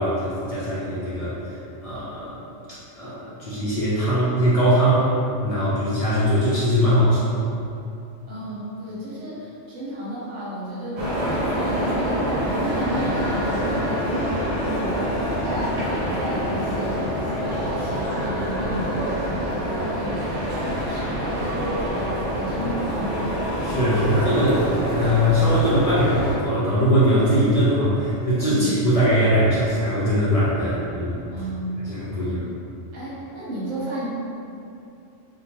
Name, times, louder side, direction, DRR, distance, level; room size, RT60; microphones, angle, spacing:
voice 1, 0.0-1.6 1.8-2.4 3.0-5.1 5.4-7.4 23.6-31.2 31.9-32.4, equal, 65° left, -10 dB, 0.3 m, -21 dB
voice 2, 8.3-23.4 28.5-28.7 31.3-31.8 32.1-32.4 32.9-34.1, right 1 dB, 40° right, -10 dB, 0.9 m, -33 dB
sound 1, 11.0-26.4, equal, 85° right, 1.1 m, -26 dB
2.6 x 2.1 x 2.9 m, 2.6 s
omnidirectional pair, 1.3 m